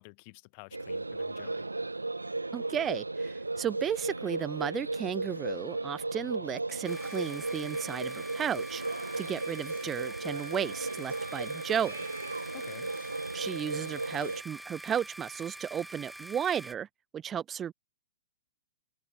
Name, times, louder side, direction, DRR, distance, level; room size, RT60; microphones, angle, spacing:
voice 1, 0.0-1.7 12.5-12.9, left 35 dB, 40° left, 3.4 m, -50 dB
sound 1, 0.7-14.4, right 2 dB, 85° right, 0.8 m, -36 dB
voice 2, 2.5-12.1 13.3-16.9 17.1-17.7, right 9 dB, 20° right, 1.4 m, -34 dB
sound 2, 6.8-16.7, right 1 dB, 5° right, 3.5 m, -46 dB
figure-of-eight pair, 110°, 0 cm